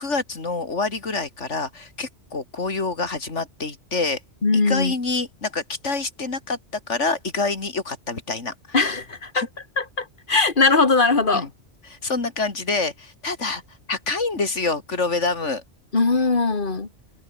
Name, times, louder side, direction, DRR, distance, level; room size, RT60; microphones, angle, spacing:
voice 1, 0.0-4.2 4.5-6.6 6.9-8.8 9.3-9.5 11.3-11.5 11.8-13.6 13.9-15.6, left 3 dB, 85° left, 3.2 m, -26 dB
voice 2, 4.4-4.9 8.7-9.4 9.8-11.5 15.9-16.9, left 3 dB, 45° left, 2.3 m, -20 dB
omnidirectional pair, 1.2 m